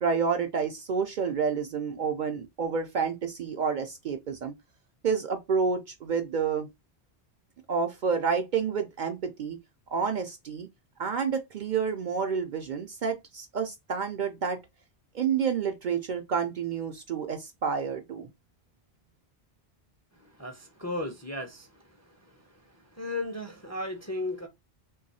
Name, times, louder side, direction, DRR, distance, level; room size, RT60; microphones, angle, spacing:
voice 1, 0.0-4.5 5.0-6.7 7.7-9.6 9.9-10.7 11.0-14.6 15.1-18.3, right 6 dB, 60° right, 0.6 m, -29 dB
voice 2, 20.4-22.3 22.9-24.5, left 2 dB, 20° left, 0.4 m, -35 dB
3.0 x 2.3 x 4.0 m
omnidirectional pair, 1.1 m